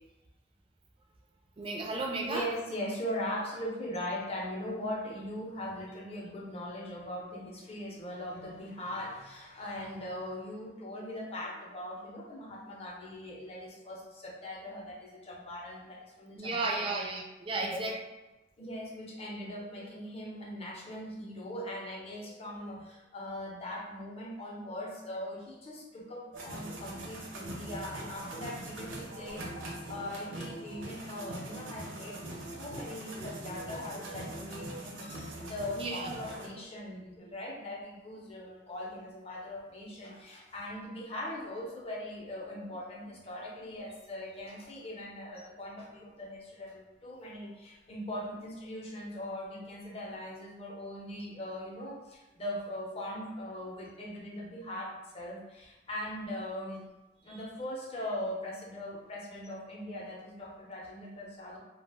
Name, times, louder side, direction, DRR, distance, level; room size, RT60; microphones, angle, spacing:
voice 1, 1.6-2.5 16.4-18.0 35.8-36.2 57.3-57.4, right 2 dB, 30° right, 0 dB, 0.4 m, -34 dB
voice 2, 2.3-16.9 17.5-17.8 18.6-56.8 57.2-61.6, left 1 dB, 30° left, -3 dB, 0.6 m, -40 dB
sound 1, 26.3-36.5, right 1 dB, 75° right, 0.6 m, -42 dB
2.4 x 2.1 x 3.4 m, 1.0 s
head